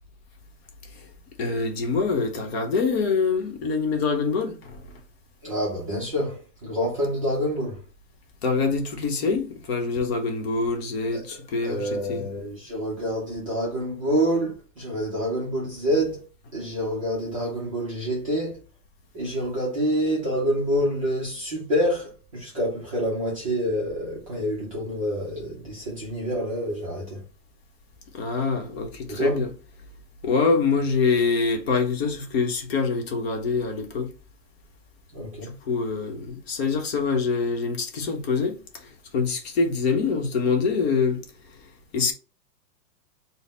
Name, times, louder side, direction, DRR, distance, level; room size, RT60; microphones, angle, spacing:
voice 1, 1.4-4.9 8.4-12.3 28.1-29.5 30.2-34.1 35.4-41.2 41.9-42.1, left 4 dB, 40° left, 0.8 m, -25 dB
voice 2, 5.4-7.8 11.1-11.2 11.6-16.2 16.5-18.6 19.1-27.2 29.1-29.4 35.1-35.6, equal, 25° right, 0.4 m, -27 dB
3.8 x 2.1 x 3.9 m
hypercardioid pair, 160°, 49 cm